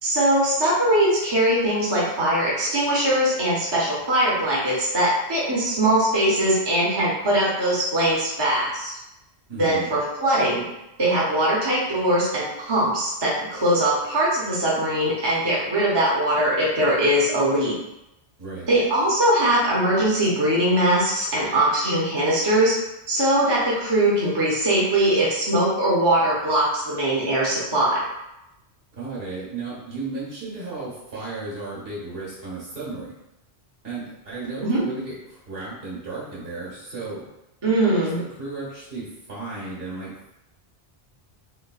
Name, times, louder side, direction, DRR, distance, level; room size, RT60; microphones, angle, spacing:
voice 1, 0.0-8.9 9.6-10.6 11.0-17.7 18.7-22.7 23.1-28.0 34.6-34.8 37.6-38.2, right 1 dB, 25° right, -6 dB, 0.7 m, -21 dB
voice 2, 9.5-9.9 18.4-18.7 28.9-33.1 33.8-37.2 37.8-40.3, right 3 dB, 60° right, -7 dB, 1.5 m, -34 dB
3.4 x 2.9 x 2.4 m, 0.91 s
omnidirectional pair, 1.1 m